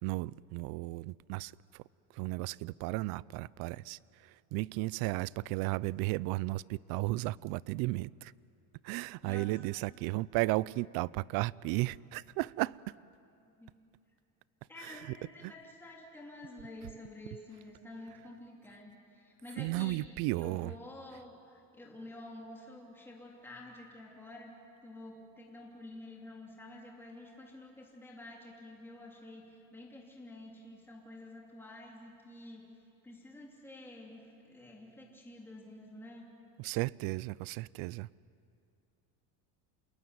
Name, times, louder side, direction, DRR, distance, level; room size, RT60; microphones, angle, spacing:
voice 1, 0.0-1.8 2.1-8.3 8.8-12.8 14.8-15.2 15.4-15.5 19.6-20.7 36.6-38.1, right 20 dB, 60° right, 22 dB, 0.6 m, -34 dB
voice 2, 13.4-13.7 14.7-20.0 20.3-24.5 24.8-32.7 33.0-36.3, left 2 dB, 5° left, -2 dB, 3.0 m, -49 dB
27.5 x 21.5 x 9.6 m, 2.7 s
cardioid pair, 160°, 41 cm